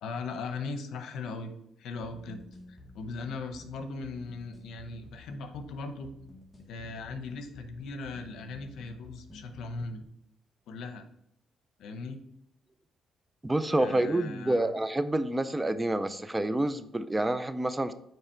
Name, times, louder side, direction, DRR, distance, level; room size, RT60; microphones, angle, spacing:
voice 1, 0.0-1.5 1.8-2.4 2.7-6.1 6.7-10.0 10.7-11.0 11.8-12.2 13.8-14.7, left 3 dB, 80° left, 7 dB, 0.8 m, -39 dB
sound 1, 2.0-10.0, left 1 dB, 20° left, 1.2 m, -51 dB
voice 2, 13.4-17.9, right 1 dB, 15° right, 12 dB, 0.4 m, -28 dB
8.9 x 3.3 x 4.4 m, 0.77 s
cardioid pair, 90°, 0 cm